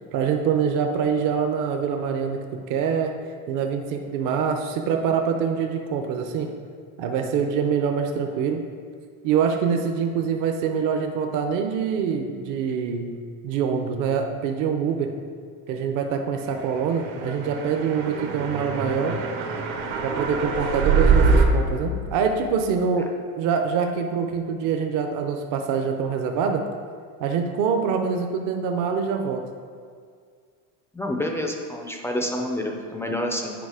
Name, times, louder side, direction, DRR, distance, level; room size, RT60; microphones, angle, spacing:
voice 1, 0.1-3.1 3.5-6.5 7.0-8.6 9.2-13.2 13.4-15.1 15.7-19.2 20.0-26.7 27.2-29.5, right 6 dB, 50° right, 4 dB, 0.7 m, -25 dB
sound 1, 17.0-21.5, right 5 dB, 75° right, 1.2 m, -23 dB
voice 2, 30.9-33.5, left 1 dB, 5° left, 1 dB, 0.3 m, -28 dB
9.2 x 5.0 x 4.8 m, 2.1 s
cardioid pair, 155°, 41 cm